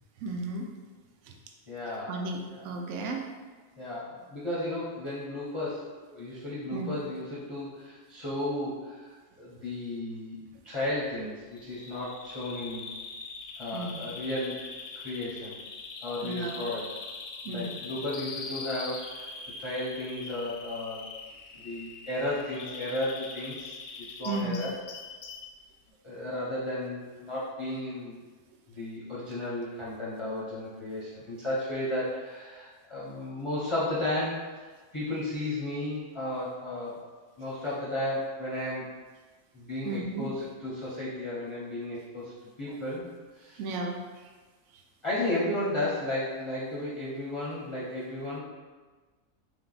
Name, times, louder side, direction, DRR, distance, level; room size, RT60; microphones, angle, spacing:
voice 1, 0.2-0.7 1.3-1.4 2.1-2.4 2.6-3.2 6.7-6.9 13.7-14.0 16.2-16.6 17.4-17.7 24.3-24.6 39.8-40.3 43.6-44.0, right 3 dB, 70° right, 2 dB, 0.9 m, -33 dB
voice 2, 1.7-2.2 2.5-2.7 3.8-12.9 13.6-14.6 14.9-15.6 16.0-16.9 17.5-21.1 21.6-23.8 24.2-24.8 26.0-28.2 28.7-34.4 34.9-37.0 37.4-38.9 39.5-42.3 42.6-43.1 43.3-43.6 45.0-48.4, left 1 dB, 30° left, -8 dB, 0.5 m, -34 dB
Bird vocalization bird call bird song, 11.5-25.5, left 4 dB, 85° left, 1.0 m, -42 dB
3.3 x 2.8 x 3.8 m, 1.4 s
omnidirectional pair, 1.4 m